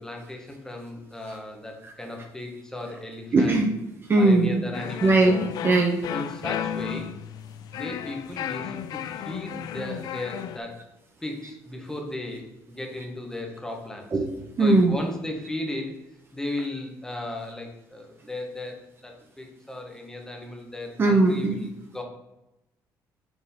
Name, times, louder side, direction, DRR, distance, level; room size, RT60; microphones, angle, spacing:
voice 1, 0.0-3.7 4.2-5.2 6.1-7.1 7.7-10.8 11.2-14.2 14.6-16.0 16.3-22.0, left 1 dB, 10° left, 2 dB, 1.3 m, -36 dB
voice 2, 3.3-3.7 4.1-4.6 5.0-5.4 5.6-6.0 14.1-14.9 21.0-21.5, right 2 dB, 35° right, 4 dB, 0.8 m, -19 dB
sound 1, 4.7-10.6, left 9 dB, 65° left, 0.4 m, -33 dB
6.9 x 3.8 x 3.6 m, 0.91 s
cardioid pair, 120°, 7 cm